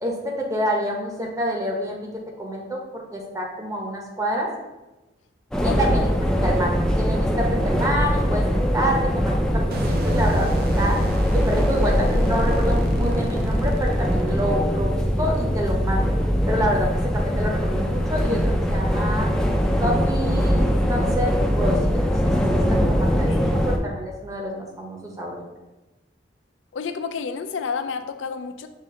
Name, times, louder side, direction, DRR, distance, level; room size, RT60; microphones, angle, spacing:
voice 1, 0.0-2.1 2.4-4.5 5.6-6.1 6.4-11.0 11.3-16.1 16.5-19.3 19.8-20.6 20.9-25.4, equal, 20° right, -1 dB, 0.8 m, -27 dB
sound 1, 5.5-23.8, equal, 5° left, 0.4 m, -22 dB
sound 2, 9.7-14.8, equal, 55° right, 0.6 m, -28 dB
voice 2, 23.3-23.6 26.7-28.7, left 5 dB, 85° left, 8 dB, 0.4 m, -30 dB
5.6 x 2.5 x 3.7 m, 1.1 s
head